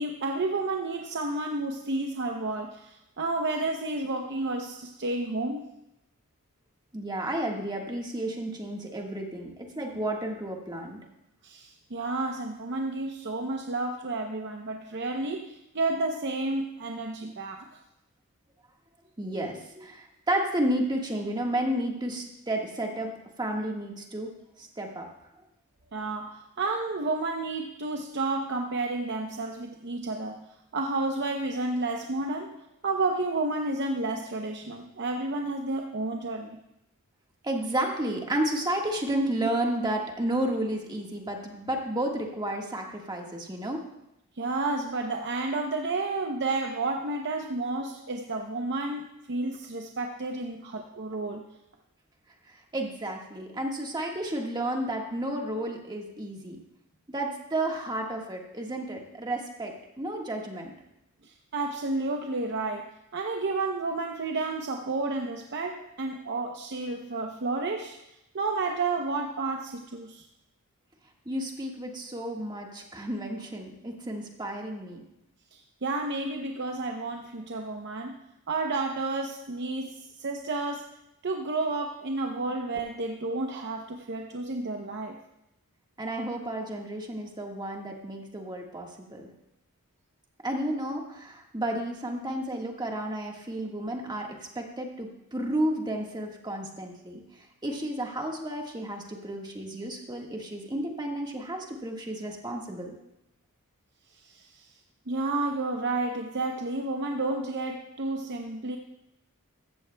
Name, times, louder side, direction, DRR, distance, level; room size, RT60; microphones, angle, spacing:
voice 1, 0.0-5.7 11.4-17.8 25.9-30.4 30.7-32.5 32.8-36.6 44.4-51.4 61.2-68.0 68.3-70.2 75.5-78.2 78.5-80.9 81.2-85.2 104.2-104.7 105.1-108.8, right 2 dB, 50° right, 3 dB, 0.7 m, -31 dB
voice 2, 6.9-11.0 19.2-23.1 23.4-24.3 24.6-25.1 37.4-43.8 52.5-56.6 57.1-60.7 71.2-75.0 86.0-89.3 90.4-97.2 97.6-102.9, right 1 dB, 20° right, 1 dB, 1.5 m, -32 dB
15.0 x 14.0 x 2.2 m, 0.88 s
head